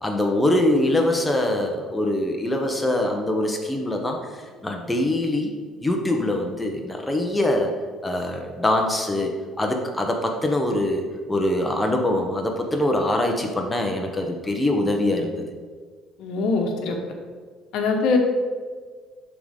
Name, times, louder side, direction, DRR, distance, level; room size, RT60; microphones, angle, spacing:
voice 1, 0.0-4.2 4.6-5.5 5.8-7.7 8.0-15.4, left 1 dB, 10° left, 2 dB, 0.9 m, -23 dB
voice 2, 16.2-16.9 17.7-18.2, left 4 dB, 75° left, 2 dB, 1.1 m, -22 dB
11.0 x 3.8 x 3.7 m, 1.5 s
cardioid pair, 105°, 0 cm